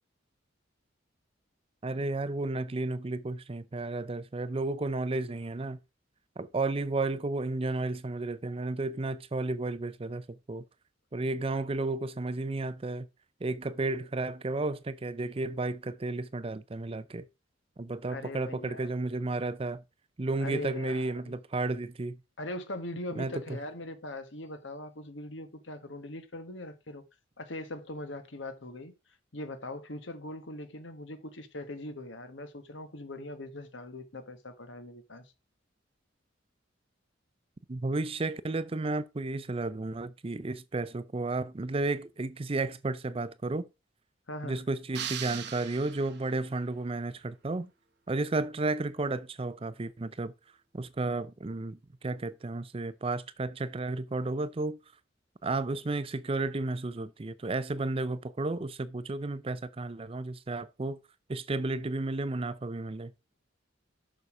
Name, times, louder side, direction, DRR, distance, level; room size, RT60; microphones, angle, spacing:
voice 1, 1.8-5.8 6.4-10.6 11.1-13.1 13.4-17.3 17.8-19.8 20.2-22.2 23.2-23.6 37.7-43.7 44.4-47.7 48.1-50.3 50.7-54.8 55.4-61.0 61.3-63.1, right 2 dB, 30° right, 0.5 m, -32 dB
voice 2, 18.1-18.9 20.4-21.3 22.4-27.0 27.4-28.9 29.3-35.3 44.3-44.6, left 1 dB, 70° left, 1.4 m, -41 dB
sound 1, 44.9-46.5, right 9 dB, 60° right, 1.0 m, -39 dB
6.8 x 6.2 x 4.9 m
head